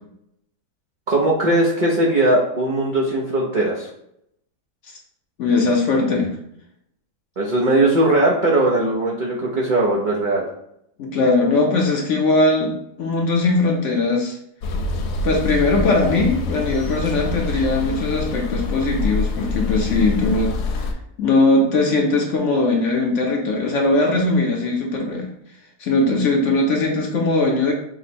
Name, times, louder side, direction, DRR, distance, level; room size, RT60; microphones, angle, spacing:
voice 1, 1.1-3.9 7.4-10.4, right 1 dB, 60° right, -4 dB, 0.4 m, -19 dB
voice 2, 5.4-6.3 11.0-14.4 15.2-20.8 21.2-25.3 25.8-27.7, left 2 dB, 60° left, 0 dB, 0.9 m, -20 dB
sound 1, 14.6-20.9, left 3 dB, 80° left, 1.2 m, -25 dB
4.9 x 2.1 x 4.2 m, 0.76 s
omnidirectional pair, 1.7 m